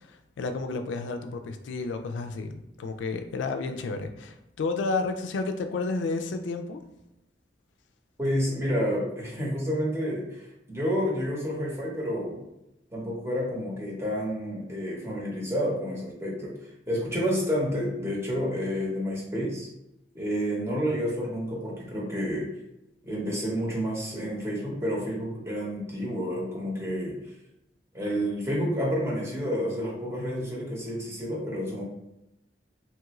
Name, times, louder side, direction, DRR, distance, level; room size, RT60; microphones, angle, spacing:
voice 1, 0.0-6.8, left 3 dB, 90° left, 7 dB, 0.3 m, -31 dB
voice 2, 8.2-12.4 12.9-16.5 16.9-19.7 20.1-22.5 23.0-27.2 27.9-31.8, equal, 15° right, -4 dB, 0.8 m, -29 dB
3.0 x 2.4 x 3.0 m, 0.89 s
head